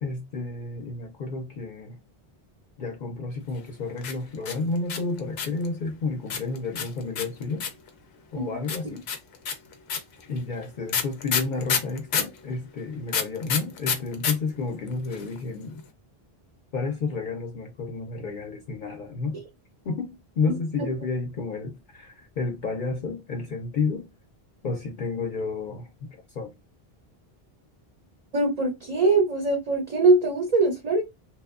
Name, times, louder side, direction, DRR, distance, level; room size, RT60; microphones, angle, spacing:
voice 1, 0.0-2.0 2.8-7.6 8.3-9.1 10.3-15.8 16.7-19.4 19.8-24.1 24.6-26.5, left 3 dB, 60° left, 0.6 m, -31 dB
sound 1, 4.0-5.7 6.3-7.9 8.7-12.4 13.1-14.3 14.6-14.7 14.9-15.4, left 6 dB, 90° left, 0.9 m, -27 dB
voice 2, 28.3-31.0, right 3 dB, 50° right, 0.5 m, -22 dB
2.9 x 2.1 x 2.3 m
omnidirectional pair, 1.0 m